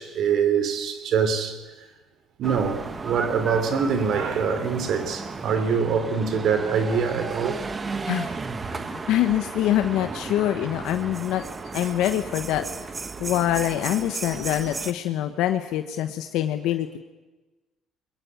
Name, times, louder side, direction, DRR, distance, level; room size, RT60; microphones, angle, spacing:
voice 1, 0.0-1.6 2.4-7.6, right 6 dB, 60° right, 3.3 m, -24 dB
sound 1, 2.4-14.9, right 4 dB, 25° right, 1.3 m, -34 dB
voice 2, 8.1-8.4 8.7-11.5 11.7-12.9 13.2-17.0, left 12 dB, 75° left, 1.1 m, -25 dB
21.5 x 21.0 x 9.5 m
cardioid pair, 105°, 0 cm